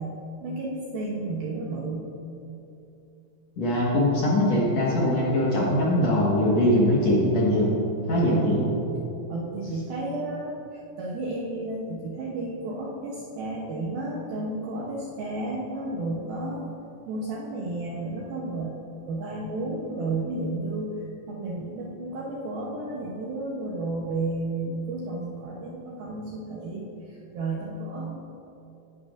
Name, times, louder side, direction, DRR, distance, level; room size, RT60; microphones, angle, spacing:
voice 1, 0.0-2.1 5.0-5.2 8.3-8.6 9.3-16.7 17.1-18.8 19.1-28.1, right 2 dB, 75° right, -3 dB, 2.4 m, -32 dB
voice 2, 3.6-7.7 8.1-8.7, left 1 dB, 60° left, -6 dB, 1.9 m, -22 dB
17.0 x 10.5 x 2.5 m, 2.8 s
omnidirectional pair, 5.0 m